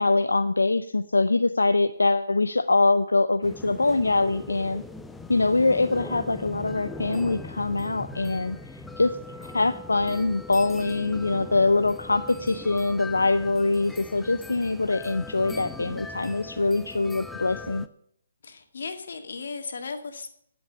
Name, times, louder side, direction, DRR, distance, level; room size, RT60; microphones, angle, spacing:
voice 1, 0.0-4.8 5.3-17.9, left 3 dB, 85° left, 11 dB, 0.5 m, -24 dB
sound 1, 3.4-17.9, left 3 dB, 5° left, 0.6 m, -40 dB
voice 2, 18.4-20.3, left 4 dB, 65° left, 7 dB, 2.1 m, -36 dB
10.5 x 8.1 x 6.9 m, 0.70 s
figure-of-eight pair, 140°, 0 cm